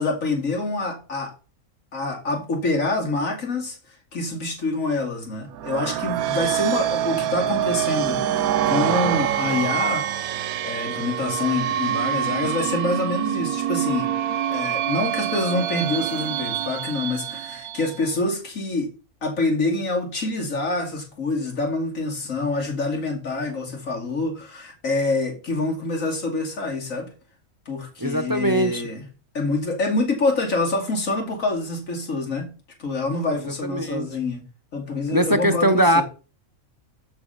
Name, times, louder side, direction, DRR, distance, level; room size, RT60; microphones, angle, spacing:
voice 1, 0.0-1.3 1.9-3.8 4.1-14.1 14.5-18.9 19.2-27.1 27.7-29.0 29.3-32.5 32.8-34.4 34.7-36.0, left 3 dB, 65° left, 2.8 m, -26 dB
sound 1, 5.5-18.0, right 11 dB, 85° right, 1.1 m, -25 dB
voice 2, 28.0-28.8 33.7-34.1 35.1-36.0, right 1 dB, 25° right, 0.4 m, -20 dB
14.0 x 4.7 x 5.6 m
omnidirectional pair, 1.5 m